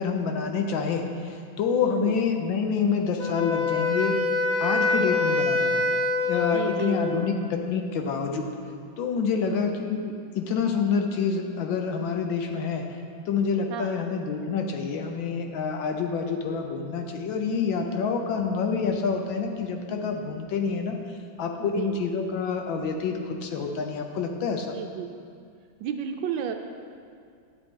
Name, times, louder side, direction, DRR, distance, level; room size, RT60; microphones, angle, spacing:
voice 1, 0.0-4.2 4.6-5.8 6.3-8.5 9.0-12.8 13.3-21.0 21.4-24.7, left 5 dB, 70° left, 4 dB, 1.4 m, -27 dB
voice 2, 1.8-2.2 6.4-7.3 9.3-9.6 13.7-14.0 21.6-22.0 24.6-25.2 25.8-26.5, right 8 dB, 75° right, 5 dB, 1.2 m, -32 dB
Wind instrument woodwind instrument, 3.2-7.2, left 3 dB, 55° left, 1.2 m, -25 dB
11.0 x 7.8 x 3.7 m, 2.3 s
omnidirectional pair, 2.3 m